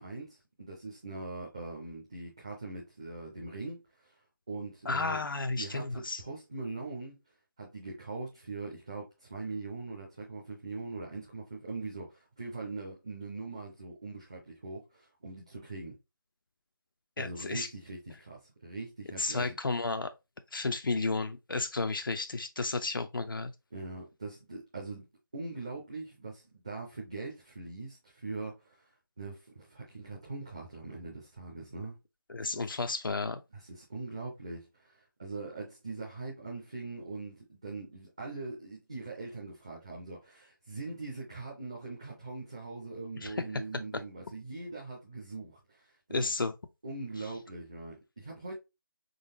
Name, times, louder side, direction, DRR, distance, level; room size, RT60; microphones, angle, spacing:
voice 1, 0.0-4.2 4.5-5.2 5.6-7.2 7.6-15.9 17.2-19.6 23.7-25.0 25.3-28.9 29.2-32.0 32.4-32.7 33.5-46.3 46.8-48.5, right 3 dB, 15° right, 0.5 m, -42 dB
voice 2, 4.9-6.2 17.2-17.7 19.2-20.1 20.5-23.5 32.3-33.4 43.2-43.4 46.1-46.5, left 3 dB, 75° left, 0.5 m, -32 dB
3.9 x 3.5 x 2.6 m
figure-of-eight pair, 170°, 11 cm